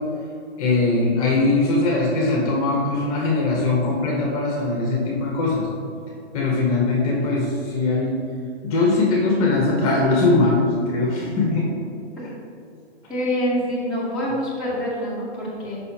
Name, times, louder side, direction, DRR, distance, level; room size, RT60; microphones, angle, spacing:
voice 1, 0.6-5.7 6.3-8.2 8.6-11.7, left 3 dB, 30° left, -3 dB, 1.1 m, -21 dB
voice 2, 13.1-15.8, equal, ahead, -10 dB, 1.3 m, -26 dB
6.6 x 5.7 x 2.8 m, 2.5 s
hypercardioid pair, 150°, 33 cm